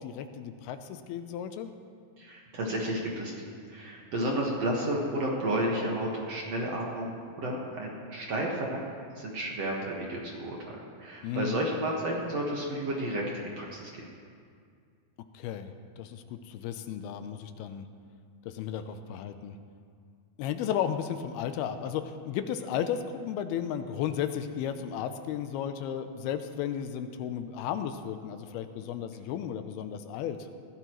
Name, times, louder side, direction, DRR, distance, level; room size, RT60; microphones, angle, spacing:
voice 1, 0.0-1.7 11.2-11.6 15.3-17.9 18.5-19.6 20.4-30.4, left 9 dB, 85° left, 9 dB, 2.6 m, -34 dB
voice 2, 2.2-3.3 3.7-8.8 9.2-13.9, right 1 dB, 50° right, -2 dB, 2.2 m, -32 dB
21.5 x 16.0 x 3.1 m, 2.2 s
omnidirectional pair, 4.5 m